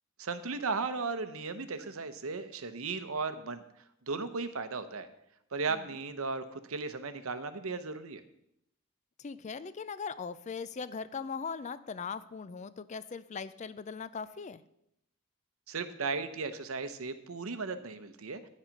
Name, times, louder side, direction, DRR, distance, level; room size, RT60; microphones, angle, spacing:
voice 1, 0.2-3.6 4.1-5.1 5.5-8.2 15.7-18.4, right 4 dB, 80° right, 11 dB, 0.8 m, -36 dB
voice 2, 9.2-14.6, left 5 dB, 35° left, 15 dB, 0.4 m, -40 dB
9.9 x 7.4 x 5.2 m, 0.77 s
head